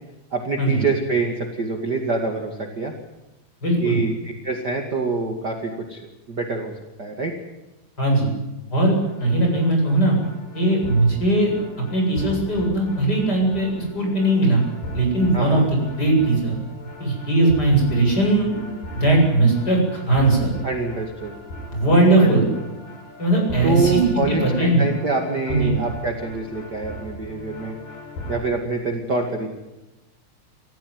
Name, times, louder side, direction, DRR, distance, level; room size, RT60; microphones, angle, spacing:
voice 1, 0.3-2.9 3.8-6.0 6.3-6.7 7.0-7.3 15.3-15.6 20.6-21.3 22.2-22.4 23.6-27.8 28.3-29.5, right 3 dB, 40° right, 3 dB, 1.4 m, -25 dB
voice 2, 3.6-4.0 8.0-8.3 8.7-10.2 10.5-11.5 11.9-14.6 14.9-16.6 17.0-18.5 18.9-20.5 21.7-22.5 23.2-24.0 24.3-24.8 25.5-25.8, right 2 dB, 20° left, 0 dB, 8.4 m, -19 dB
sound 1, 9.0-28.4, equal, 50° left, 6.2 m, -37 dB
28.5 x 15.0 x 9.6 m, 1.0 s
omnidirectional pair, 5.2 m